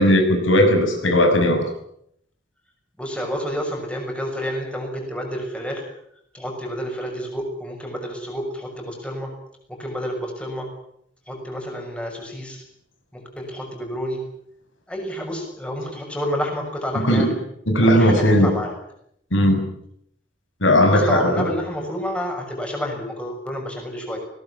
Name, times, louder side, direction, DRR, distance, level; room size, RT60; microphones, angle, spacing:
voice 1, 0.0-1.6 17.0-17.3 17.7-18.5 19.3-19.6 20.6-21.5, equal, 85° left, 5 dB, 6.2 m, -17 dB
voice 2, 3.0-5.8 6.3-9.3 9.7-10.7 11.3-12.6 13.1-14.2 14.9-17.4 17.8-18.7 20.9-24.2, equal, 5° left, 2 dB, 6.4 m, -29 dB
21.0 x 18.5 x 9.8 m, 0.73 s
head